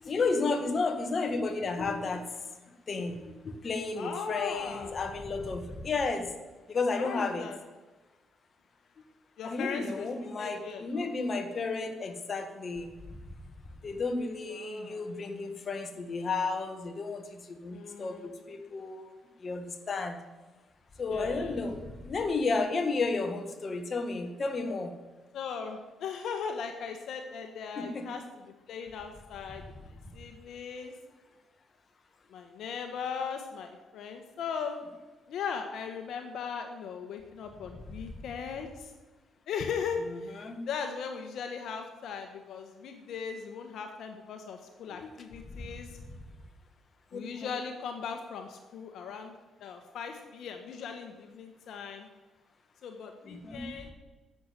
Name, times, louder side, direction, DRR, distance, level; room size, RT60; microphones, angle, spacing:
voice 1, 0.0-2.2 2.9-6.3 6.7-7.5 9.4-12.9 13.8-17.2 17.5-19.1 19.4-20.2 21.0-24.9 27.8-28.1 40.1-40.6 44.9-45.1 47.1-47.5 53.3-53.7, left 3 dB, 40° left, 5 dB, 1.8 m, -32 dB
voice 2, 4.0-4.9 7.0-7.6 9.4-10.1 10.4-11.1 14.5-15.0 17.7-18.3 21.1-21.6 25.3-28.2 28.7-30.9 32.3-34.8 35.3-38.9 39.5-45.9 47.1-49.3 49.6-52.1 52.8-53.9, left 6 dB, 75° left, 5 dB, 1.3 m, -38 dB
11.5 x 7.5 x 8.2 m, 1.2 s
cardioid pair, 90°, 0 cm